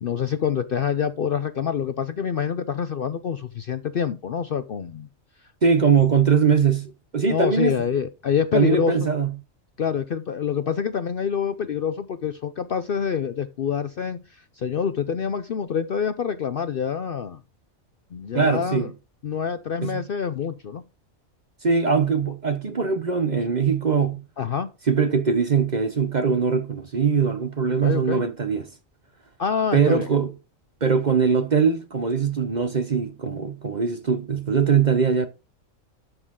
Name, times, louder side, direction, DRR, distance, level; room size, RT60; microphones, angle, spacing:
voice 1, 0.0-5.1 7.3-8.9 9.8-17.4 18.1-18.9 19.2-20.8 24.4-24.7 27.8-28.2 29.4-30.1, left 7 dB, 55° left, 0.6 m, -26 dB
voice 2, 5.6-7.8 8.5-9.3 18.3-18.9 19.8-20.0 21.6-24.2 24.9-28.7 29.7-30.3 30.8-35.3, right 6 dB, 40° right, 0.8 m, -21 dB
12.0 x 6.2 x 3.7 m
omnidirectional pair, 1.4 m